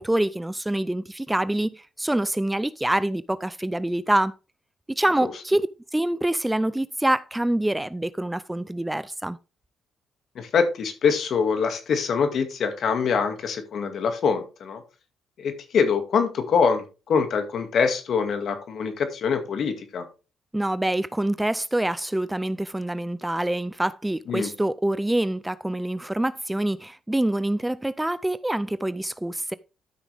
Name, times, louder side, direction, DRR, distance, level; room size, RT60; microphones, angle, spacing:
voice 1, 0.0-4.3 4.9-5.7 5.9-9.4 20.5-29.5, right 1 dB, 10° right, 0.4 m, -26 dB
voice 2, 10.4-14.8 15.4-20.1 24.3-24.5, left 6 dB, 60° left, 2.1 m, -24 dB
12.5 x 6.1 x 3.5 m
cardioid pair, 90°, 0 cm